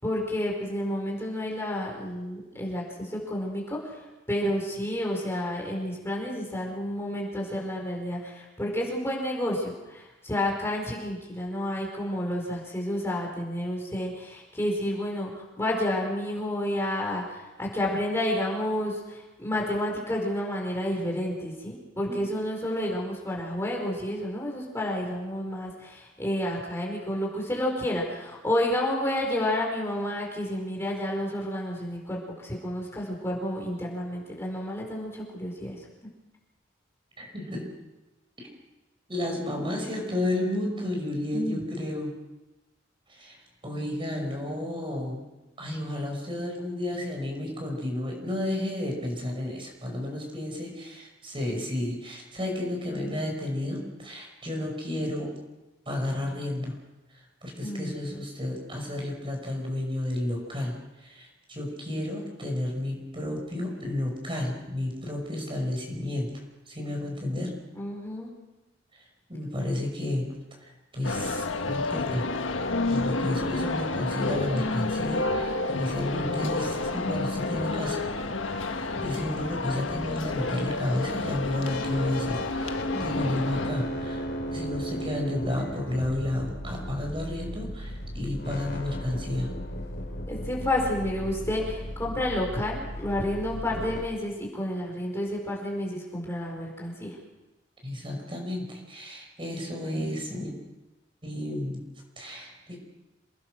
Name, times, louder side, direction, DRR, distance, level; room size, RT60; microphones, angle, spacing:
voice 1, 0.0-36.1 41.3-41.6 57.6-58.2 67.8-68.3 82.9-83.6 90.3-97.2, left 1 dB, 15° left, -2 dB, 5.2 m, -30 dB
voice 2, 37.2-37.7 38.4-38.5 39.1-42.1 43.1-45.3 45.6-55.3 55.9-56.8 57.1-66.4 66.7-67.5 68.9-69.0 69.3-72.3 72.9-78.0 78.9-84.2 84.5-89.5 97.8-100.5 101.2-101.8 102.2-102.8, left 1 dB, 25° right, 1 dB, 5.7 m, -32 dB
sound 1, 71.0-83.7, left 3 dB, 90° left, 1.6 m, -30 dB
sound 2, 78.7-94.0, equal, 60° left, 3.6 m, -36 dB
28.0 x 19.5 x 6.4 m, 1.1 s
head